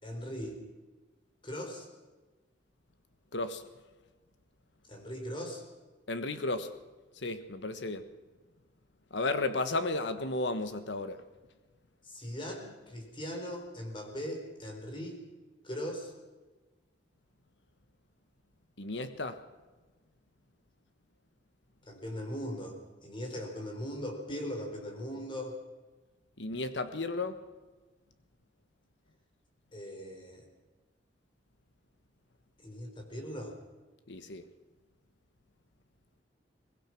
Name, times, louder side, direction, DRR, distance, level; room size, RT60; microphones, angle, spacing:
voice 1, 0.0-0.6 1.4-1.9 4.9-5.6 12.0-15.2 15.6-16.1 21.9-25.6 29.7-30.5 32.6-33.6, equal, 30° left, 2 dB, 4.3 m, -39 dB
voice 2, 3.3-3.6 6.1-6.7 7.2-8.0 9.1-11.2 18.8-19.4 26.4-27.3 34.1-34.4, left 2 dB, 85° left, 10 dB, 1.4 m, -33 dB
22.5 x 21.0 x 6.0 m, 1.2 s
head